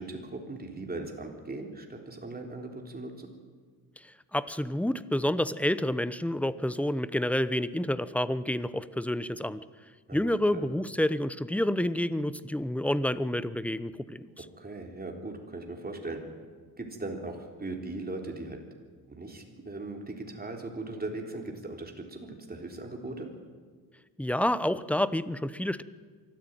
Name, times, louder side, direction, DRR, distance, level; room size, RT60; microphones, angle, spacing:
voice 1, 0.0-3.3 10.1-10.3 10.5-10.7 14.4-16.2 16.8-18.6 19.1-23.3, right 2 dB, 25° right, 2 dB, 3.8 m, -39 dB
voice 2, 4.0-9.6 10.1-14.4 24.2-25.8, left 1 dB, 5° left, 15 dB, 0.8 m, -29 dB
23.5 x 14.0 x 9.2 m, 1.5 s
cardioid pair, 90°, 39 cm